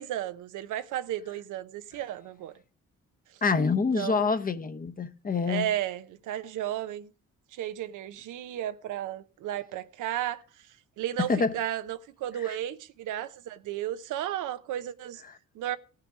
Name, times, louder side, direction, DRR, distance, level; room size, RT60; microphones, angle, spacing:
voice 1, 0.0-2.5 3.9-4.3 5.5-7.1 7.5-10.4 11.0-15.2 15.5-15.8, right 12 dB, 85° right, 0.8 m, -33 dB
voice 2, 3.4-5.7 11.2-11.5 12.4-12.6 15.3-15.4, left 4 dB, 30° left, 0.9 m, -27 dB
16.5 x 5.8 x 4.9 m
cardioid pair, 90°, 30 cm